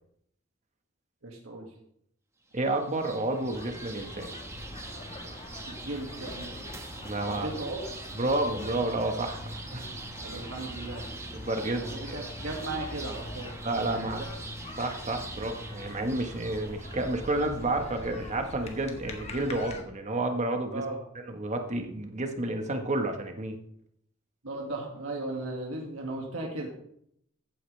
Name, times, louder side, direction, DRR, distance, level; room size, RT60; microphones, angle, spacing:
voice 1, 1.2-1.7 5.7-6.5 7.3-7.8 10.2-11.1 11.8-13.5 13.8-14.1 20.7-21.0 24.4-26.7, right 2 dB, 80° right, -1 dB, 2.1 m, -36 dB
sound 1, 2.5-17.7, right 2 dB, 15° right, 1.2 m, -44 dB
voice 2, 2.5-4.3 7.0-7.5 8.1-9.4 9.7-9.9 11.3-12.2 13.6-14.2 14.8-20.8 21.3-23.6, right 2 dB, 35° right, 5 dB, 1.4 m, -30 dB
sound 2, 3.5-19.8, left 1 dB, 30° left, 1.6 m, -43 dB
15.0 x 9.0 x 3.4 m, 0.71 s
head